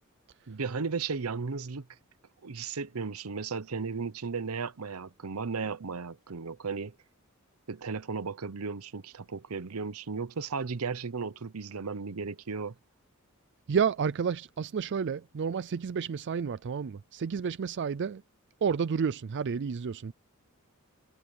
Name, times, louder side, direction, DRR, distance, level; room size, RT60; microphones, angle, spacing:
voice 1, 0.5-1.9 2.4-6.9 7.7-12.7, right 5 dB, 80° right, 0.8 m, -35 dB
voice 2, 13.7-18.2 18.6-20.1, right 6 dB, 55° right, 0.4 m, -30 dB
head